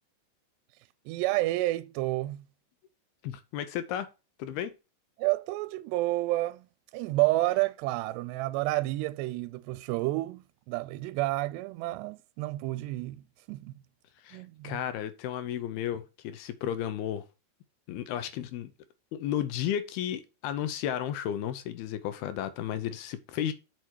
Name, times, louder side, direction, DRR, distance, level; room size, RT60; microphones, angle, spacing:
voice 1, 1.1-2.4 5.2-6.7 6.9-13.7 14.3-14.8, right 18 dB, 85° right, 2.6 m, -30 dB
voice 2, 3.2-4.1 4.4-4.7 14.2-17.2 17.9-18.7 19.1-23.5, left 10 dB, 80° left, 2.4 m, -33 dB
6.8 x 5.9 x 4.6 m
omnidirectional pair, 5.0 m